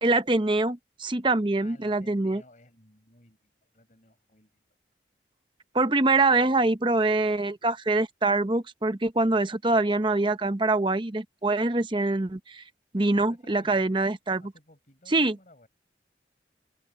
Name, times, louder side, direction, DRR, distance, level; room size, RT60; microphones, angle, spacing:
voice 1, 0.0-2.4 5.7-12.6 12.9-14.5 15.1-15.4, right 2 dB, 30° right, 0.8 m, -24 dB
voice 2, 1.6-4.5 12.9-14.0 14.4-15.7, left 1 dB, 45° left, 5.1 m, -56 dB
open air
head